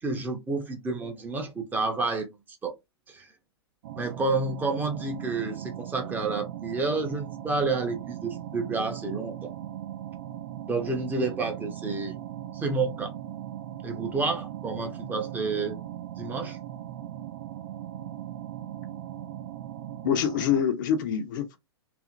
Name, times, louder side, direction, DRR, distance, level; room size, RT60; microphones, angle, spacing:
voice 1, 0.0-2.3 2.6-2.7 3.1-3.3 4.0-9.5 10.7-12.2 12.5-13.2 13.8-15.8 16.2-16.6, right 3 dB, 10° right, 0.7 m, -29 dB
sound 1, 3.8-20.6, right 12 dB, 50° right, 0.4 m, -39 dB
voice 2, 20.0-21.6, left 8 dB, 45° left, 0.6 m, -25 dB
2.7 x 2.6 x 2.4 m
figure-of-eight pair, 100°, 14 cm